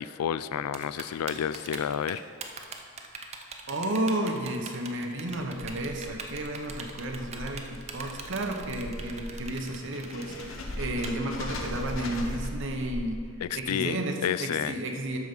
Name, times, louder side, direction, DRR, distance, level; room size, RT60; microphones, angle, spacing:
voice 1, 0.0-2.2 13.4-14.8, left 9 dB, 85° left, 15 dB, 0.3 m, -30 dB
Typing, 0.7-11.1, right 5 dB, 30° right, 0.6 m, -41 dB
voice 2, 3.7-13.2 13.5-15.2, right 1 dB, 55° right, 3 dB, 1.0 m, -32 dB
sound 1, 5.5-13.6, left 1 dB, 60° left, 1.0 m, -39 dB
12.0 x 4.7 x 5.3 m, 2.2 s
head